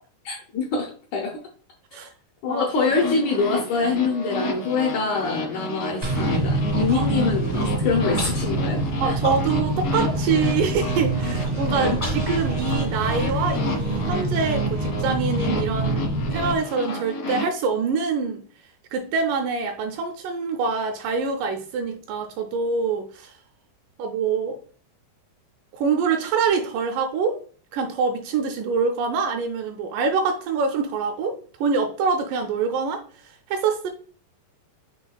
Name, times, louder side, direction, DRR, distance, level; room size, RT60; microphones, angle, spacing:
voice 1, 0.2-1.4 2.4-9.1, left 4 dB, 80° left, 0 dB, 1.7 m, -25 dB
sound 1, 2.7-17.5, equal, 60° left, 1.0 m, -31 dB
sound 2, 6.0-16.6, right 1 dB, 50° right, 0.5 m, -26 dB
Human voice, 7.4-7.7 8.2-8.5 8.8-9.7 10.1-10.2 10.5-10.9 11.4-14.3, left 1 dB, 40° left, 0.5 m, -35 dB
voice 2, 9.0-18.4 18.9-23.3 24.0-24.6 25.7-27.4 27.7-33.9, right 5 dB, 80° right, 5 dB, 1.9 m, -25 dB
7.1 x 3.1 x 2.2 m, 0.43 s
omnidirectional pair, 4.0 m